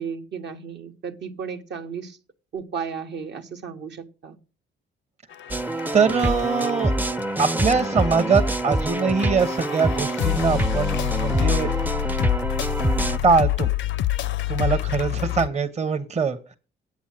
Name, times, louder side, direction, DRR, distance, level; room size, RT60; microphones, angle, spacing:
voice 1, 0.0-2.2 2.5-4.4, right 6 dB, 60° right, 4 dB, 1.3 m, -34 dB
sound 1, 5.3-15.5, left 13 dB, 70° left, 0.5 m, -28 dB
sound 2, 5.5-13.2, right 1 dB, 10° right, 0.5 m, -25 dB
voice 2, 5.9-6.9 7.4-11.7 13.2-13.7 14.5-16.4, right 5 dB, 35° right, 7 dB, 1.1 m, -22 dB
8.4 x 7.1 x 7.6 m, 0.36 s
cardioid pair, 90°, 20 cm